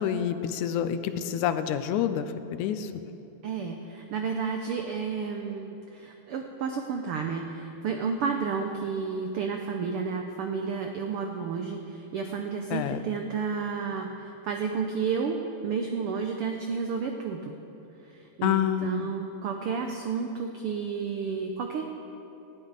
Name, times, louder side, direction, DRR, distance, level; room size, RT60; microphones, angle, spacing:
voice 1, 0.0-2.3 2.5-2.9 12.7-13.0 18.4-19.1, left 9 dB, 90° left, 11 dB, 2.0 m, -27 dB
voice 2, 3.4-15.4 15.6-17.6 18.4-21.8, right 5 dB, 85° right, 4 dB, 1.2 m, -31 dB
19.0 x 12.0 x 4.0 m, 3.0 s
omnidirectional pair, 3.4 m